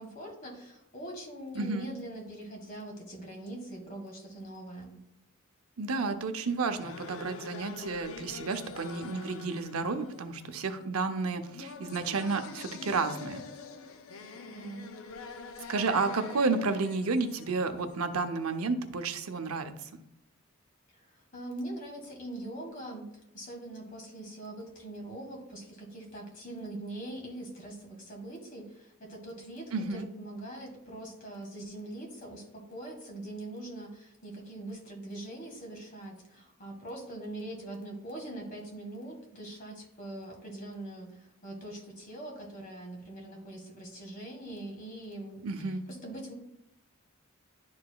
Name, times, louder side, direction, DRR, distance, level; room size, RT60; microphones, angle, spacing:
voice 1, 0.0-5.0 14.5-14.9 21.1-23.1 23.3-46.3, right 1 dB, 40° left, 1 dB, 1.6 m, -42 dB
voice 2, 1.5-1.9 5.8-13.4 15.7-19.7 29.7-30.0 45.4-45.8, right 4 dB, 90° right, 8 dB, 0.6 m, -31 dB
sound 1, 6.4-18.2, left 4 dB, 85° left, 0.6 m, -45 dB
11.0 x 4.7 x 2.3 m, 0.80 s
head